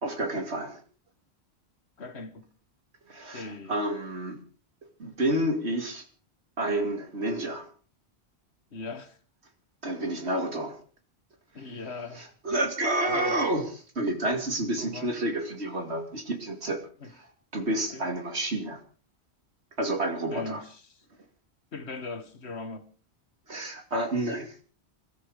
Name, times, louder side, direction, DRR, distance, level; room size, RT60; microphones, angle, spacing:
voice 1, 0.0-0.8 3.1-4.4 5.0-6.1 6.6-7.7 9.8-10.8 12.2-16.8 17.5-18.8 19.8-20.6 23.5-24.6, right 1 dB, 90° right, 2.9 m, -29 dB
voice 2, 2.0-2.5 3.3-3.8 8.7-9.2 11.5-12.3 13.1-13.4 14.8-15.1 17.0-17.1 17.9-18.1 20.3-21.0 21.7-22.8, left 3 dB, 85° left, 1.8 m, -39 dB
22.0 x 13.0 x 5.0 m
omnidirectional pair, 1.1 m